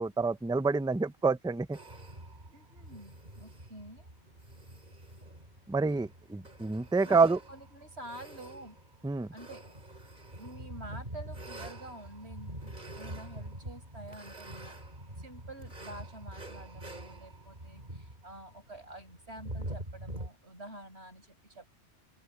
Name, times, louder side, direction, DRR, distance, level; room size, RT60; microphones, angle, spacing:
voice 1, 0.0-1.8 5.7-7.4 9.0-9.3, right 4 dB, 5° right, 0.5 m, -27 dB
sound 1, 1.7-20.3, right 1 dB, 45° right, 4.8 m, -45 dB
voice 2, 2.5-4.1 7.0-8.8 9.3-9.6 10.4-14.8 15.2-21.7, right 1 dB, 75° right, 7.4 m, -48 dB
open air
omnidirectional pair, 1.1 m